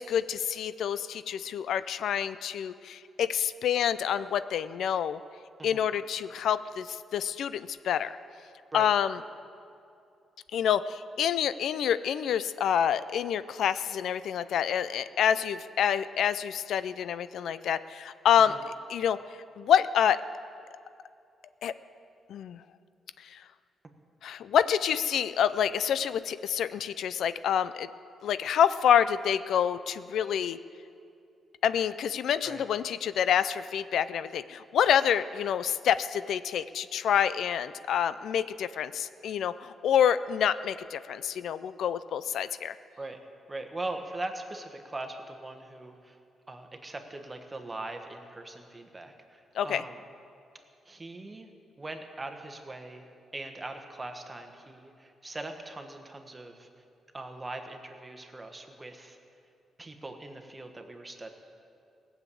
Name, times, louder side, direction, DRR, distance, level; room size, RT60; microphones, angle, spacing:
voice 1, 0.0-5.2 5.6-8.2 8.7-9.2 10.5-18.6 18.9-19.2 19.6-20.2 21.6-21.7 22.3-22.6 23.2-23.4 24.2-27.9 28.2-30.6 31.6-42.8 49.6-49.8, left 9 dB, 75° left, 14 dB, 0.4 m, -27 dB
voice 2, 5.6-5.9 8.7-8.9 18.5-18.6 32.4-32.6 43.0-43.2 43.5-46.2 46.5-50.0 50.8-51.5 51.8-56.7 57.1-59.2 59.8-61.3, right 2 dB, 20° right, 5 dB, 1.3 m, -41 dB
17.5 x 7.3 x 8.4 m, 2.5 s
cardioid pair, 115°, 0 cm